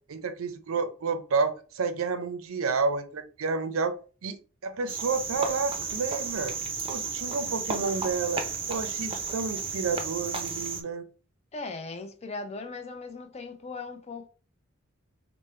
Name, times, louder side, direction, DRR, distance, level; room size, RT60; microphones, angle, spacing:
voice 1, 0.1-4.0 4.2-6.6 6.9-11.0, right 4 dB, 85° right, 0.5 m, -30 dB
Cricket, 4.9-10.8, right 5 dB, 25° right, 0.5 m, -33 dB
voice 2, 11.5-14.3, left 3 dB, 30° left, 0.5 m, -38 dB
3.3 x 2.1 x 4.2 m
head